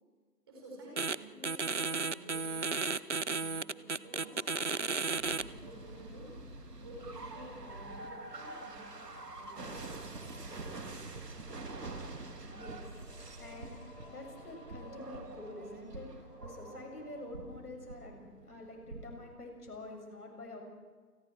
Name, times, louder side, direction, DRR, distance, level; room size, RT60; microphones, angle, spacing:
voice 1, 0.5-4.4 4.9-6.3 6.8-8.9 9.4-9.7, right 1 dB, 15° right, -3 dB, 4.9 m, -52 dB
sound 1, 1.0-1.2 1.4-5.4, right 4 dB, 50° right, 0.5 m, -33 dB
sound 2, 4.0-17.6, left 4 dB, 50° left, 4.4 m, -59 dB
sound 3, 5.1-19.3, right 2 dB, 85° right, 3.0 m, -46 dB
voice 2, 12.4-20.6, left 2 dB, 75° left, 2 dB, 7.1 m, -47 dB
29.5 x 19.5 x 4.6 m, 1.5 s
hypercardioid pair, 180°, 47 cm